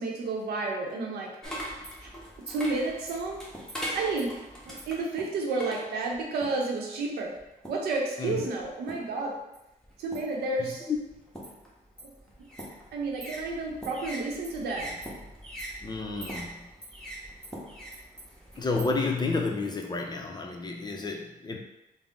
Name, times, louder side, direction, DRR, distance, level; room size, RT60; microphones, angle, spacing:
voice 1, 0.0-1.4 2.0-2.1 2.4-3.5 3.9-7.4 7.7-9.4 10.0-10.9 12.0-12.1 12.9-15.0, right 3 dB, 85° right, 0 dB, 0.7 m, -31 dB
sound 1, 1.4-6.7 7.4-7.9 8.6-9.2 9.5-19.2, equal, 5° left, 1.1 m, -41 dB
voice 2, 15.8-16.6 18.6-21.6, left 3 dB, 25° left, 2 dB, 0.6 m, -30 dB
3.6 x 2.0 x 3.6 m, 0.92 s
cardioid pair, 70°, 16 cm